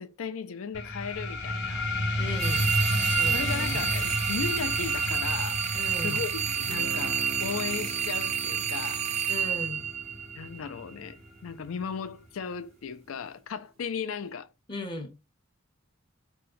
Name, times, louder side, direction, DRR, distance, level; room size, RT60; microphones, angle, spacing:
voice 1, 0.0-1.9 3.3-5.6 6.0-9.0 10.3-11.2 11.4-14.5, left 6 dB, 85° left, 0.4 m, -36 dB
sound 1, 0.7-11.8, left 1 dB, 55° left, 0.9 m, -33 dB
voice 2, 2.2-2.7 3.0-3.9 5.7-6.2 9.3-9.8 14.7-15.1, left 1 dB, 25° left, 0.7 m, -37 dB
sound 2, 2.4-10.6, right 8 dB, 35° right, 0.4 m, -29 dB
Guitar, 6.6-12.4, right 1 dB, 80° right, 0.7 m, -45 dB
2.8 x 2.1 x 3.7 m
head